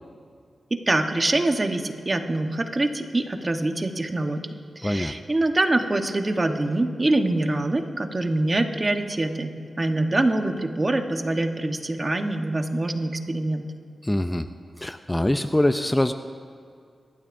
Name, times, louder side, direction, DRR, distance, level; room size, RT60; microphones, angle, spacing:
voice 1, 0.7-4.4 4.8-13.7, right 2 dB, 35° right, 5 dB, 1.1 m, -24 dB
voice 2, 4.8-5.1 14.0-14.5 14.8-16.1, left 1 dB, 15° left, 9 dB, 0.5 m, -23 dB
23.0 x 12.5 x 2.6 m, 2.3 s
cardioid pair, 60°, 0 cm